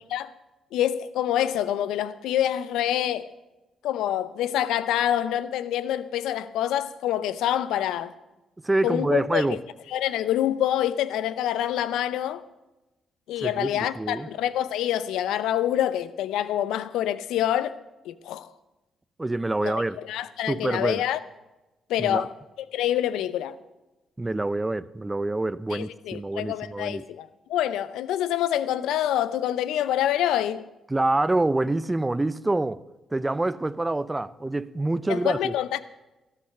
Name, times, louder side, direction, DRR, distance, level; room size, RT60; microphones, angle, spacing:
voice 1, 0.7-3.3 3.8-8.1 8.8-9.6 9.9-12.4 13.3-17.8 18.0-18.5 19.6-21.2 21.9-22.3 22.7-23.5 25.7-30.6 35.1-35.8, left 11 dB, 75° left, 0.6 m, -26 dB
voice 2, 8.6-9.6 13.4-14.3 19.2-20.0 20.5-21.0 22.0-22.3 24.2-27.0 30.9-32.8 33.1-35.5, right 2 dB, 20° right, 0.6 m, -26 dB
13.5 x 13.0 x 5.7 m
hypercardioid pair, 45°, 0 cm